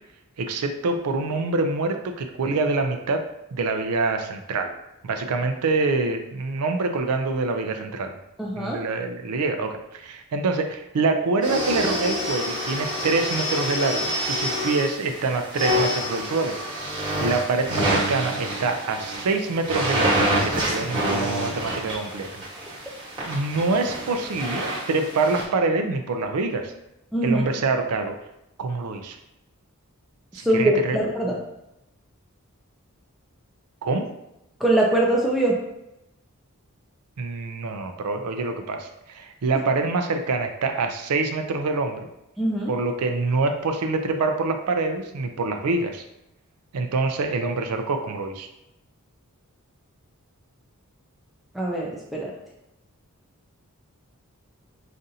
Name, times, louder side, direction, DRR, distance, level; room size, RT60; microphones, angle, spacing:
voice 1, 0.4-3.2 3.5-4.7 5.0-8.1 8.6-16.6 17.2-22.3 23.3-26.7 27.2-28.2 28.6-29.2 30.3-31.0 33.8-34.1 37.2-42.1 42.7-46.0 46.7-48.5, right 3 dB, 85° right, 5 dB, 0.4 m, -25 dB
voice 2, 8.4-8.8 27.1-27.4 30.4-31.4 34.6-35.6 42.4-42.7 51.5-52.3, right 1 dB, ahead, -3 dB, 0.4 m, -22 dB
sound 1, 11.4-25.4, equal, 20° right, 1.2 m, -27 dB
5.2 x 2.5 x 2.7 m, 0.88 s
head